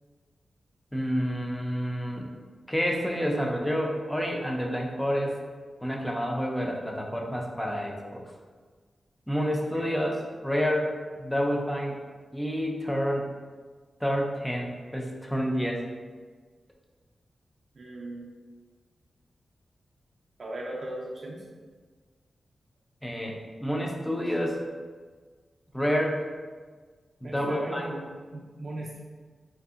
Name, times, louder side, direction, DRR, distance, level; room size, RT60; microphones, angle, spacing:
voice 1, 0.9-2.3 2.7-5.4 5.8-8.2 9.3-10.1 10.4-10.9 11.2-12.0 12.3-13.3 14.0-15.8 23.0-24.6 25.7-26.2 27.2-27.8, equal, 5° left, -1 dB, 0.4 m, -28 dB
voice 2, 17.7-18.3 20.4-21.4 27.2-29.0, right 1 dB, 55° right, -4 dB, 0.4 m, -37 dB
2.6 x 2.5 x 2.4 m, 1.5 s
wide cardioid pair, 85°, 0 cm